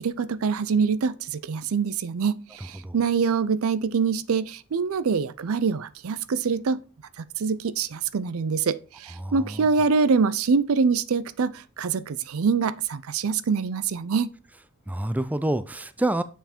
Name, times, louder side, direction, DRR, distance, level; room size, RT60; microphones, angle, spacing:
voice 1, 0.0-6.8 7.2-14.3, right 5 dB, 70° right, 0.5 m, -25 dB
voice 2, 9.2-9.7 14.9-16.2, right 1 dB, 5° right, 0.4 m, -27 dB
7.2 x 5.5 x 4.4 m
head